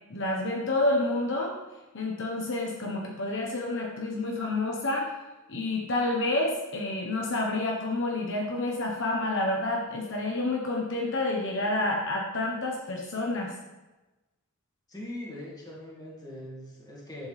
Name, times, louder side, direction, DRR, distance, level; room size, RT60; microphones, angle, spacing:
voice 1, 0.1-1.5 1.9-5.1 5.5-13.5, left 2 dB, 55° left, -1 dB, 1.3 m, -29 dB
voice 2, 14.9-17.3, left 1 dB, 15° left, -4 dB, 2.1 m, -41 dB
10.5 x 7.9 x 3.5 m, 1.1 s
head